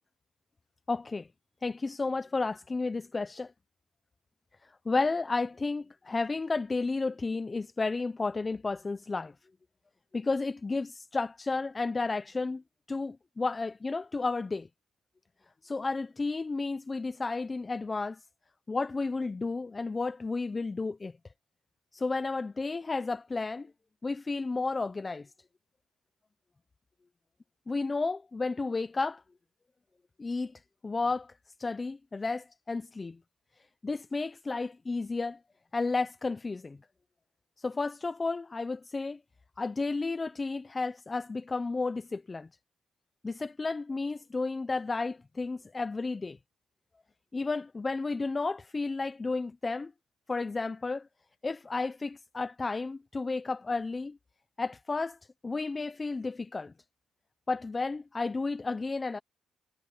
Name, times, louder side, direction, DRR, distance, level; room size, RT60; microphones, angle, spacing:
voice 1, 0.9-1.3 1.6-3.5 4.9-9.3 10.1-12.6 12.9-14.7 15.6-18.2 18.7-21.1 21.9-23.7 24.0-25.3 27.7-29.2 30.2-31.3 31.6-33.2 33.8-35.4 35.7-36.8 37.6-39.2 39.6-42.5 43.2-46.4 47.3-49.9 50.3-51.1 51.4-54.2 54.6-55.2 55.4-56.7 57.5-59.2, left 3 dB, 25° left, 0.6 m, -32 dB
cardioid pair, 90°, 0 cm